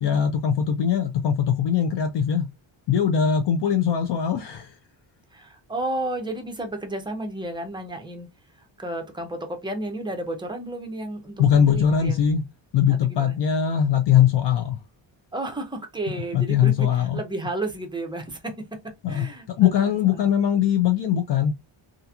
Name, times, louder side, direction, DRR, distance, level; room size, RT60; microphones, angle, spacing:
voice 1, 0.0-2.5 2.9-4.7 11.4-12.4 12.7-14.8 16.1-17.2 19.0-19.3 19.6-21.5, left 8 dB, 60° left, 0.5 m, -21 dB
voice 2, 5.3-8.3 8.6-12.2 12.9-13.4 15.3-20.3, right 2 dB, 10° right, 0.4 m, -33 dB
2.8 x 2.5 x 2.3 m
wide cardioid pair, 165°, 48 cm